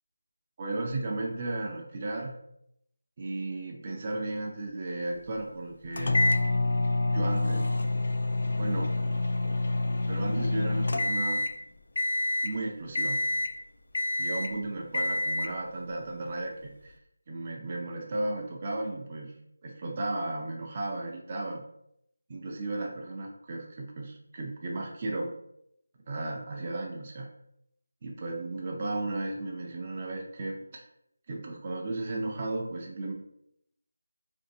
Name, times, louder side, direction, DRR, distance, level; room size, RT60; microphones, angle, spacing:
voice 1, 0.6-2.3 3.2-6.2 7.1-7.7 8.6-8.9 10.1-11.4 12.4-13.2 14.2-16.9 17.3-19.3 19.6-21.6 22.3-25.3 26.1-27.3 28.0-30.8 31.3-33.1, right 2 dB, 30° right, 0 dB, 0.4 m, -34 dB
sound 1, 6.0-11.6 12.0-12.5 13.0-13.6 13.9-14.6 14.9-15.6, left 2 dB, 60° left, 0.3 m, -27 dB
3.7 x 2.6 x 2.6 m, 0.76 s
figure-of-eight pair, 170°, 0 cm